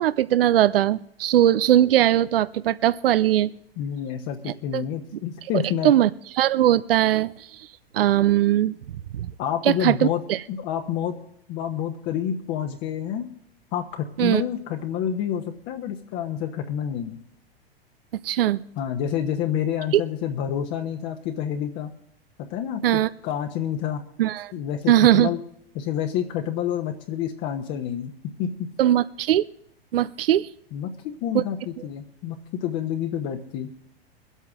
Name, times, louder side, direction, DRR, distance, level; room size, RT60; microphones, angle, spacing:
voice 1, 0.0-3.5 4.5-4.8 5.8-6.1 6.4-7.3 7.9-8.7 9.1-9.3 9.6-10.4 14.2-14.4 18.2-18.6 22.8-23.1 24.2-24.5 24.9-25.3 28.8-29.5 29.9-30.5 31.3-31.4, right 12 dB, 65° right, 18 dB, 0.5 m, -20 dB
voice 2, 3.8-5.9 9.4-10.2 10.5-11.1 11.5-13.3 13.7-17.2 18.8-21.9 22.5-24.0 24.5-25.4 25.7-28.1 28.4-28.7 30.7-30.9 31.2-33.7, left 9 dB, 35° left, 4 dB, 1.1 m, -28 dB
24.0 x 8.2 x 3.6 m, 0.74 s
figure-of-eight pair, 95°, 30 cm